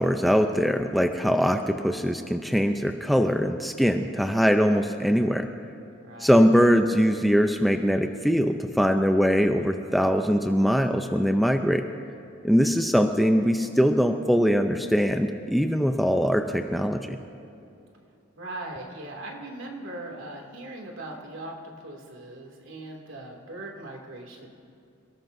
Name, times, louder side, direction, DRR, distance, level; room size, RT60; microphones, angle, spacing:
voice 1, 0.0-5.5 6.2-11.9 12.4-17.2, equal, ahead, 5 dB, 0.6 m, -22 dB
voice 2, 6.0-6.4 18.3-24.5, right 2 dB, 75° right, 0 dB, 2.6 m, -40 dB
28.0 x 18.0 x 2.7 m, 2.6 s
head